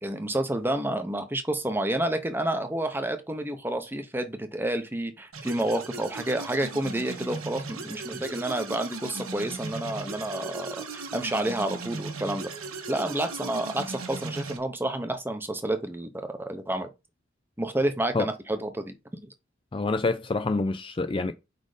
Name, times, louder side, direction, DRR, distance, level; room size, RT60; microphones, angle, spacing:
voice 1, 0.0-12.5 12.9-16.1 16.5-16.9 17.6-18.9, right 1 dB, 10° right, 0.8 m, -29 dB
sound 1, 5.3-14.6, right 3 dB, 85° right, 1.4 m, -37 dB
voice 2, 19.7-21.3, left 3 dB, 25° left, 0.3 m, -27 dB
5.2 x 4.2 x 4.9 m
head